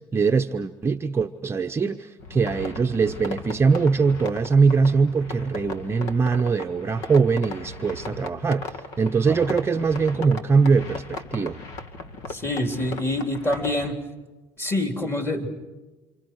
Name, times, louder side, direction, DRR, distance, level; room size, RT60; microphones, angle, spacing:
voice 1, 0.1-11.6, right 5 dB, 20° right, 0.8 m, -22 dB
sound 1, 2.2-13.9, left 3 dB, 75° left, 2.5 m, -37 dB
voice 2, 12.3-14.0 14.6-15.5, left 1 dB, 20° left, 3.8 m, -26 dB
29.5 x 27.5 x 4.8 m
supercardioid pair, 115°, 12 cm